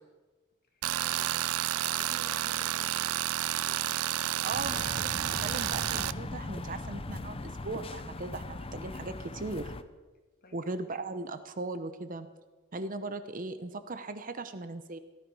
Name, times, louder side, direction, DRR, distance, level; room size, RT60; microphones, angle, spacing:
voice 1, 0.7-4.2 10.4-10.9, left 2 dB, 45° left, 2 dB, 2.6 m, -54 dB
Tools, 0.8-6.1, right 13 dB, 80° right, 0.4 m, -30 dB
voice 2, 4.4-9.7 10.5-12.3 12.7-15.0, right 3 dB, 40° right, 10 dB, 0.8 m, -38 dB
sound 1, 4.5-9.8, left 2 dB, 25° left, 0.6 m, -39 dB
17.5 x 13.5 x 5.4 m, 1.3 s
head